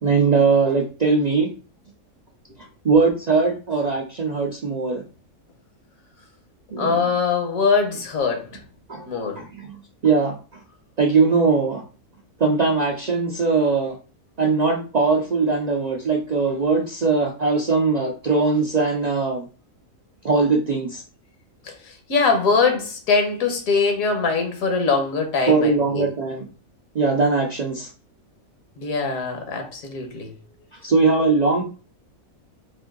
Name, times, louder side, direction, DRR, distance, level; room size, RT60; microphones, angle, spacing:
voice 1, 0.0-1.5 2.8-5.0 6.7-7.1 8.9-9.1 9.4-10.6 11.0-11.8 12.4-14.0 14.4-19.4 20.2-21.0 25.5-26.5 26.9-27.9 30.8-31.6, right 4 dB, 80° right, 0.3 m, -20 dB
voice 2, 6.8-8.6 9.1-9.4 21.8-26.1 28.8-30.3, left 4 dB, 70° left, 1.4 m, -22 dB
4.3 x 2.6 x 3.7 m
omnidirectional pair, 1.5 m